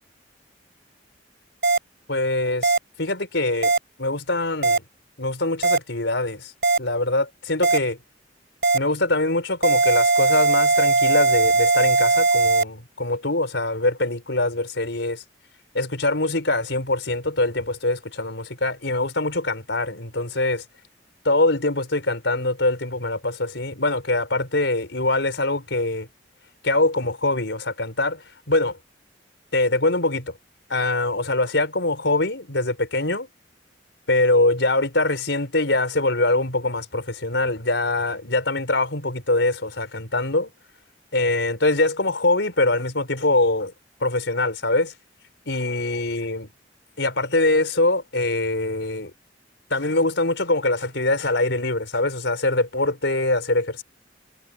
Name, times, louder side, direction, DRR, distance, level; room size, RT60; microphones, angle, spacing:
sound 1, 1.6-1.8 2.6-2.8 3.6-3.8 4.6-4.8 5.6-5.8 6.6-6.8 7.6-7.8 8.6-8.8 9.6-12.6, right 3 dB, 65° right, 4.3 m, -18 dB
voice 1, 2.1-3.7 4.0-4.8 5.2-6.5 6.8-8.0 8.7-15.2 15.7-20.6 21.2-26.1 26.6-28.2 28.5-28.8 29.5-30.3 30.7-33.3 34.1-40.5 41.1-43.7 44.0-44.9 45.5-46.5 47.0-49.1 49.7-53.8, left 2 dB, 75° left, 4.9 m, -23 dB
head